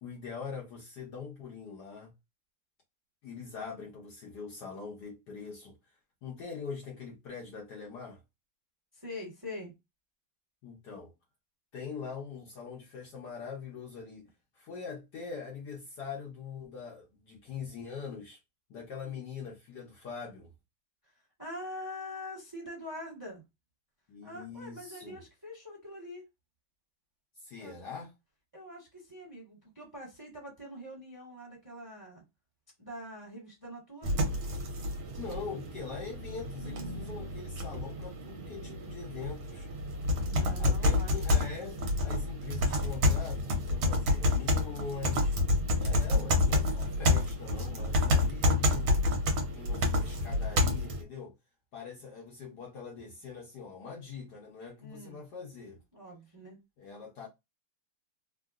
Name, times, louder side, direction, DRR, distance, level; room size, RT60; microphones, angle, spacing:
voice 1, 0.0-2.1 3.2-5.8 6.2-8.2 10.6-11.1 11.7-14.3 14.5-18.4 18.7-20.5 24.1-25.2 27.4-28.1 35.2-39.7 40.6-45.4 45.8-49.0 49.4-51.3 51.7-55.8 56.8-57.3, left 5 dB, 65° left, 1.1 m, -42 dB
voice 2, 8.9-9.7 21.4-23.4 24.2-26.2 27.6-27.8 28.5-32.2 32.8-34.2 40.2-41.1 54.8-55.2 55.9-56.6, left 1 dB, 10° right, 1.0 m, -44 dB
sound 1, 34.0-51.0, left 2 dB, 70° right, 1.5 m, -29 dB
3.6 x 2.2 x 2.3 m
omnidirectional pair, 2.3 m